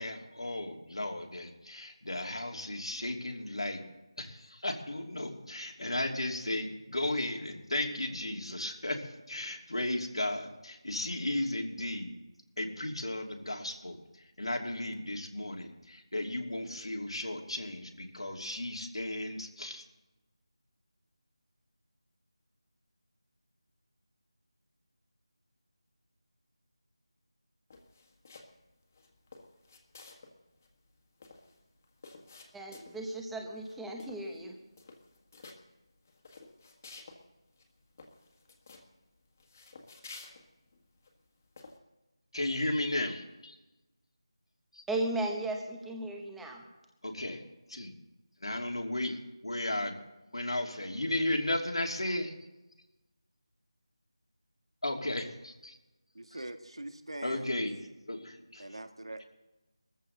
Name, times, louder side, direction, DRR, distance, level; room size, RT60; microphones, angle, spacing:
voice 1, 0.0-3.8 4.2-12.1 12.6-19.8 42.3-43.6 44.7-44.8 47.0-47.4 47.7-47.9 48.4-50.0 50.3-52.3 54.8-55.8 56.3-56.4 57.2-57.8 58.1-58.7, left 1 dB, 80° left, 2.8 m, -35 dB
sound 1, 27.7-28.6 28.9-30.3 30.6-30.7 30.9-33.1 33.5-33.7 34.0-34.4 34.7-35.6 36.0-37.2 37.5-37.6 38.0-38.9 39.4-41.1 41.6-41.8, left 3 dB, 30° left, 1.7 m, -52 dB
voice 2, 32.5-34.6 44.9-46.6, right 2 dB, 5° right, 1.0 m, -35 dB
voice 3, 56.1-57.6 58.6-59.2, right 1 dB, 80° right, 1.8 m, -43 dB
20.5 x 14.5 x 4.0 m
figure-of-eight pair, 170°, 3 cm